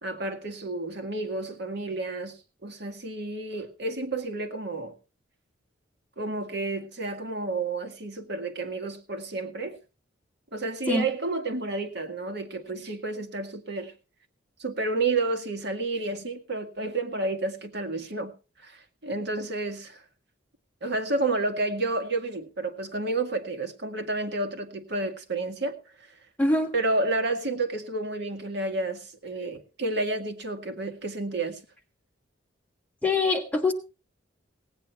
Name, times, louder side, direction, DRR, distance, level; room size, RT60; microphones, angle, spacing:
voice 1, 0.0-4.9 6.2-9.8 10.5-13.9 14.6-18.3 18.6-20.0 20.8-25.8 26.7-31.6, right 2 dB, 60° right, 1.9 m, -30 dB
voice 2, 26.4-26.7 33.0-33.7, left 3 dB, 10° left, 2.1 m, -23 dB
18.0 x 9.3 x 4.4 m
head